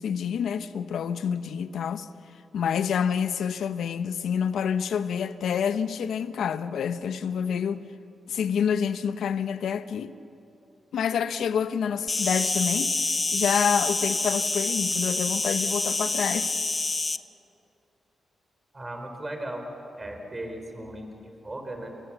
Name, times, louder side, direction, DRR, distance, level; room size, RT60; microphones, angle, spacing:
voice 1, 0.0-2.1 2.5-7.8 8.3-10.1 10.9-13.0 13.3-16.5, left 7 dB, 85° left, 0.9 m, -27 dB
Insect, 12.1-17.2, left 3 dB, 25° left, 0.7 m, -27 dB
voice 2, 18.7-19.7 20.0-21.9, right 1 dB, 25° right, 3.7 m, -37 dB
29.0 x 18.0 x 7.2 m
cardioid pair, 90°, 0 cm